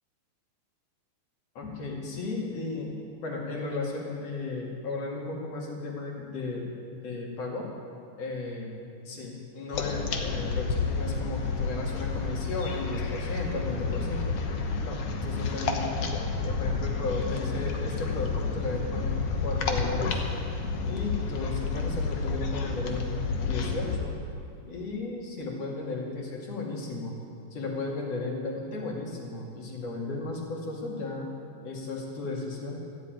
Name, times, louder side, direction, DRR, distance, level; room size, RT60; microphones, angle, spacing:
voice 1, 1.5-2.9 3.2-7.7 8.2-8.8 9.0-14.4 14.8-16.0 16.4-20.2 20.8-24.1 24.7-27.2 27.5-31.4 31.6-32.8, left 3 dB, 45° left, -2 dB, 2.9 m, -35 dB
sound 1, 9.7-24.0, left 4 dB, 75° left, 1.4 m, -30 dB
14.0 x 10.0 x 9.1 m, 2.5 s
omnidirectional pair, 4.4 m